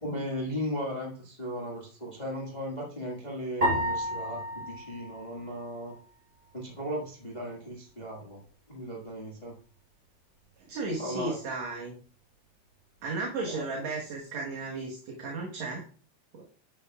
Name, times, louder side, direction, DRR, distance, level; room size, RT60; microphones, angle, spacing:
voice 1, 0.0-5.9 6.5-8.4 8.7-9.5 11.0-11.4 13.5-13.7, equal, 70° left, -3 dB, 0.4 m, -36 dB
sound 1, 3.6-6.1, equal, 30° right, 4.9 m, -32 dB
voice 2, 10.6-11.9 13.0-15.9 16.3-16.4, right 3 dB, 60° right, -1 dB, 2.3 m, -34 dB
10.5 x 8.6 x 2.3 m, 0.40 s
omnidirectional pair, 4.0 m